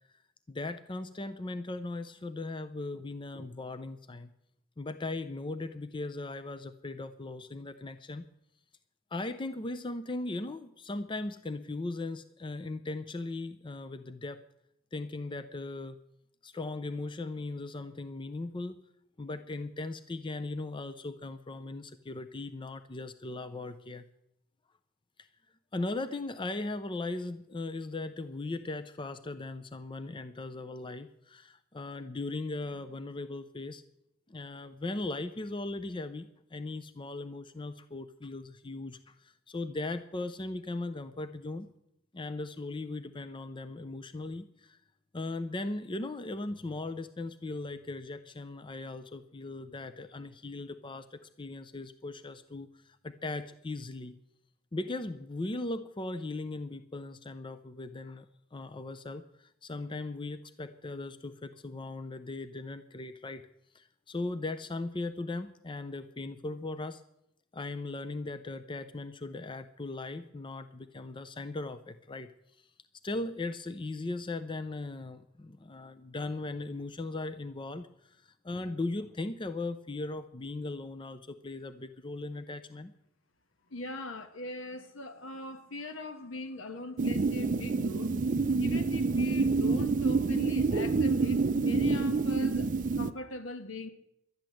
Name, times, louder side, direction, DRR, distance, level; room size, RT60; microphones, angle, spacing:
voice 1, 0.5-4.3 4.8-8.3 9.1-14.4 14.9-16.0 16.4-18.8 19.2-24.1 25.7-33.8 34.3-41.7 42.1-44.8 45.1-54.2 54.7-58.3 58.5-63.5 63.7-67.0 67.5-72.3 73.0-82.9, left 2 dB, 25° left, 0.5 m, -38 dB
voice 2, 83.7-88.1 88.6-93.9, left 2 dB, 75° left, 1.4 m, -41 dB
sound 1, 87.0-93.1, right 4 dB, 40° right, 0.5 m, -27 dB
12.0 x 10.5 x 7.7 m
head